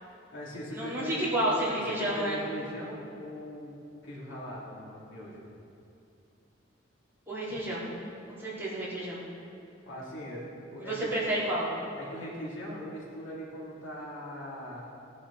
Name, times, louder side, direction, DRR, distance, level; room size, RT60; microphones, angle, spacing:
voice 1, 0.0-1.3 1.9-5.5 9.8-11.2 12.0-14.8, equal, 70° left, -6 dB, 3.4 m, -40 dB
voice 2, 0.7-2.4 7.3-7.9 8.3-9.2 10.8-11.7, right 1 dB, 10° right, -9 dB, 3.9 m, -30 dB
19.0 x 11.0 x 4.3 m, 2.6 s
head